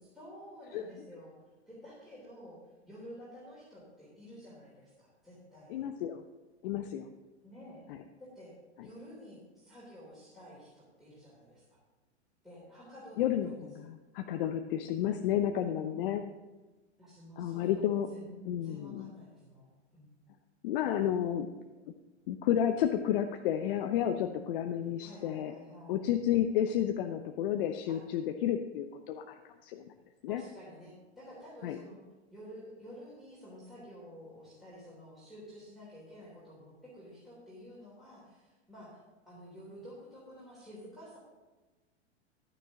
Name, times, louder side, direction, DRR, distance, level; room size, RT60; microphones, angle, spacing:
voice 1, 0.1-1.3 1.7-2.6 2.8-5.9 7.4-7.8 8.2-8.5 8.8-11.8 12.4-13.9 15.8-16.1 17.0-19.7 19.9-20.1 24.0-24.3 25.0-26.0 27.9-28.0 30.3-32.0 32.3-39.0 39.3-41.2, equal, ahead, -9 dB, 3.6 m, -51 dB
voice 2, 5.7-6.2 6.6-7.1 7.9-8.0 13.2-16.2 17.4-18.1 18.5-19.1 20.6-21.5 22.3-25.5 25.9-29.2 29.6-29.8 30.2-30.4 31.6-31.8, left 10 dB, 50° left, 6 dB, 0.7 m, -31 dB
11.5 x 9.3 x 3.8 m, 1.2 s
hypercardioid pair, 110°, 35 cm